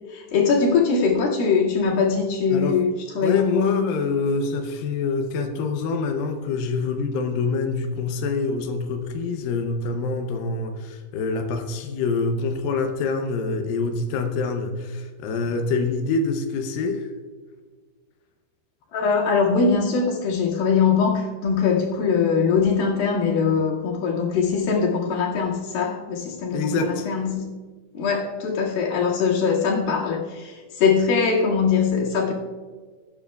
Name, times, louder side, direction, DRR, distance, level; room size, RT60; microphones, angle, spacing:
voice 1, 0.1-2.9 3.2-3.9 18.9-27.5 27.9-32.3, left 5 dB, 60° left, -5 dB, 3.7 m, -22 dB
voice 2, 3.2-17.1 26.5-27.1, left 4 dB, 80° left, 5 dB, 2.1 m, -26 dB
20.5 x 9.7 x 2.3 m, 1.5 s
omnidirectional pair, 5.1 m